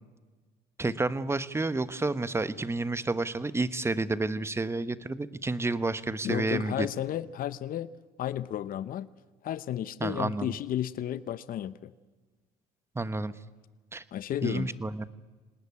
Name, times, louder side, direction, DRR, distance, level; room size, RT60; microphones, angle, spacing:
voice 1, 0.8-6.9 10.0-10.6 12.9-13.3 13.9-14.0 14.4-15.1, right 3 dB, 15° right, 15 dB, 1.1 m, -30 dB
voice 2, 6.2-7.9 8.2-9.1 9.4-11.9 14.1-14.7, left 11 dB, 55° left, 16 dB, 0.9 m, -33 dB
26.5 x 19.0 x 9.7 m, 1.3 s
cardioid pair, 110°, 17 cm